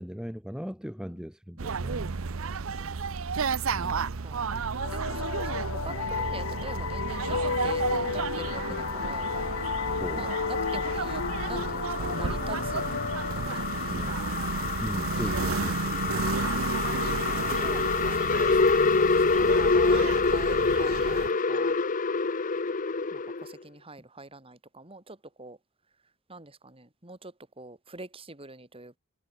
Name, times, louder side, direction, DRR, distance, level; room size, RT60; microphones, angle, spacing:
voice 1, 0.0-2.1 3.7-4.1 8.7-8.9 10.0-10.3 13.9-14.2 14.8-16.0, equal, 5° right, 1.2 m, -38 dB
voice 2, 1.5-3.0 3.8-3.9 4.2-4.5 4.8-9.3 10.2-12.9 13.3-14.1 17.4-18.6 18.9-21.8 23.1-25.6 26.3-29.0, right 2 dB, 25° right, 3.7 m, -45 dB
sound 1, 1.6-21.3, right 4 dB, 80° right, 0.8 m, -32 dB
sound 2, 4.8-14.2, left 5 dB, 80° left, 0.7 m, -33 dB
sound 3, 8.4-23.5, left 4 dB, 40° left, 0.8 m, -27 dB
head